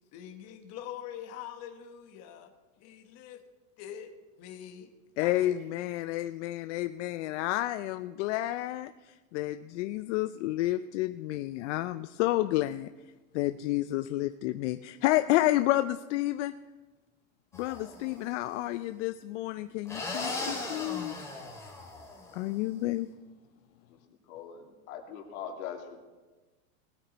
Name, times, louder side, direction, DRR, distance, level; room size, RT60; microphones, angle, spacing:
voice 1, 0.1-2.5 2.8-3.4 3.8-4.1 4.4-4.9 5.2-5.6, left 10 dB, 35° left, 4 dB, 1.2 m, -44 dB
voice 2, 5.2-8.9 9.3-12.9 13.3-16.5 17.5-21.1 22.3-23.1, left 16 dB, 55° left, 11 dB, 0.5 m, -30 dB
sound 1, 17.5-18.3 19.9-22.5, left 2 dB, 5° left, 2.3 m, -38 dB
voice 3, 24.3-26.0, left 8 dB, 80° left, 2 dB, 2.6 m, -41 dB
20.0 x 8.6 x 4.0 m, 1.2 s
supercardioid pair, 155°, 42 cm